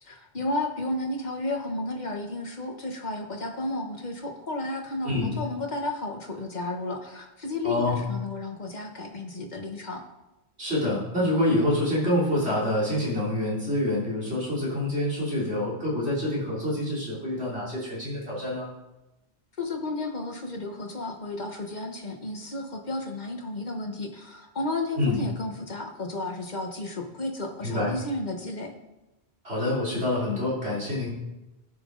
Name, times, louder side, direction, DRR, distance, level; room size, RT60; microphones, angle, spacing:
voice 1, 0.0-10.0 19.6-28.7, left 2 dB, 45° left, 3 dB, 1.4 m, -32 dB
voice 2, 7.6-8.0 10.6-18.7 25.0-25.2 27.6-27.9 29.4-31.1, left 1 dB, 80° right, -7 dB, 3.7 m, -26 dB
18.0 x 6.2 x 3.9 m, 0.98 s
omnidirectional pair, 1.1 m